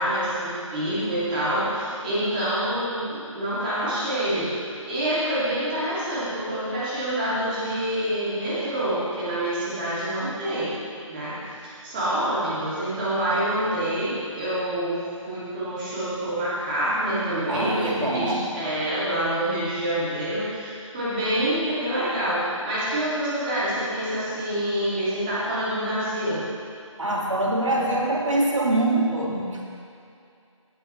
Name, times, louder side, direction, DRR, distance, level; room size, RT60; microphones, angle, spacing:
voice 1, 0.0-4.5 4.8-10.8 11.1-26.5, right 1 dB, 15° right, -10 dB, 2.5 m, -27 dB
voice 2, 17.5-18.5 27.0-29.6, right 1 dB, 65° right, -2 dB, 2.2 m, -24 dB
17.0 x 9.0 x 3.3 m, 2.5 s
figure-of-eight pair, 155°, 17 cm